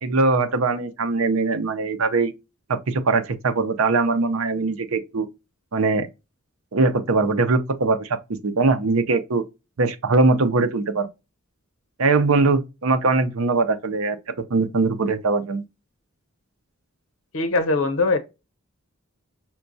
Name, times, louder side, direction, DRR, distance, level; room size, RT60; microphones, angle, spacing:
voice 1, 0.0-2.3 2.7-5.3 5.7-6.1 6.7-8.1 8.4-9.4 9.8-11.1 12.0-14.2 14.5-15.6, right 3 dB, 85° right, 0.6 m, -21 dB
voice 2, 17.3-18.2, left 3 dB, 70° left, 0.9 m, -21 dB
5.7 x 2.3 x 2.6 m
head